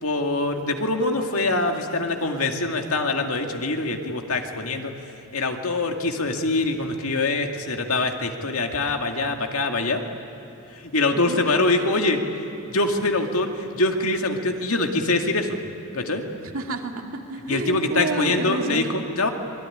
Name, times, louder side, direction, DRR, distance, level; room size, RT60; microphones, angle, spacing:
voice 1, 0.0-4.9 5.3-10.0 10.7-12.2 12.7-15.6 15.9-16.2 17.5-19.3, left 2 dB, 70° left, 4 dB, 2.2 m, -24 dB
voice 2, 16.4-18.8, right 2 dB, 70° right, 3 dB, 2.5 m, -30 dB
26.0 x 21.5 x 10.0 m, 2.9 s
head